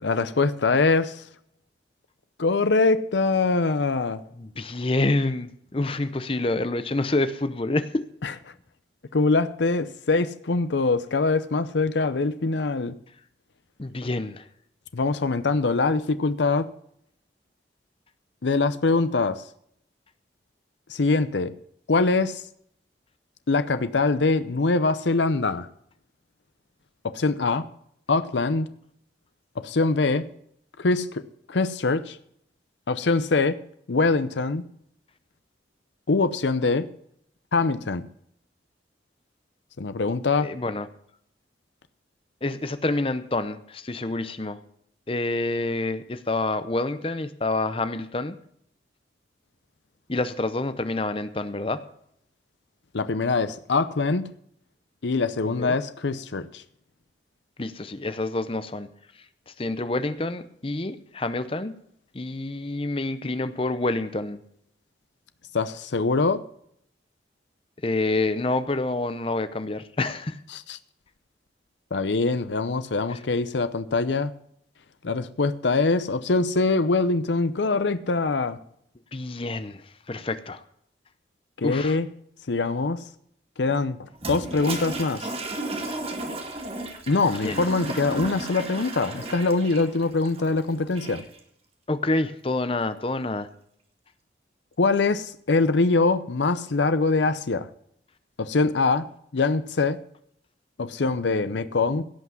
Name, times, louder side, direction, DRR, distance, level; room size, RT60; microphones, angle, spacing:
voice 1, 0.0-1.2 2.4-4.2 8.2-8.3 9.1-12.9 14.9-16.7 18.4-19.4 20.9-21.5 21.9-22.4 23.5-25.7 27.0-27.6 28.1-28.7 29.6-30.3 30.8-31.2 31.5-32.2 32.9-33.6 33.9-34.6 36.1-36.9 37.5-38.1 39.8-40.5 52.9-54.3 55.0-56.6 65.5-66.4 70.5-70.8 71.9-74.3 75.0-78.6 81.6-82.1 82.5-83.0 83.6-85.3 87.1-91.2 94.8-97.7 98.4-99.1 99.3-100.0 100.8-102.0, left 3 dB, 80° left, 12 dB, 0.7 m, -23 dB
voice 2, 4.4-8.0 13.8-14.4 40.4-40.9 42.4-44.6 45.1-48.4 50.1-51.8 55.6-55.8 57.6-58.9 59.6-61.7 62.1-64.4 67.8-70.4 73.1-73.2 79.1-79.8 80.1-80.6 81.6-82.0 87.4-87.6 91.9-93.5, left 2 dB, 30° left, 12 dB, 0.7 m, -27 dB
Toilet flush, 84.1-91.4, right 2 dB, 35° right, 2.1 m, -34 dB
17.0 x 6.0 x 7.2 m, 0.68 s
head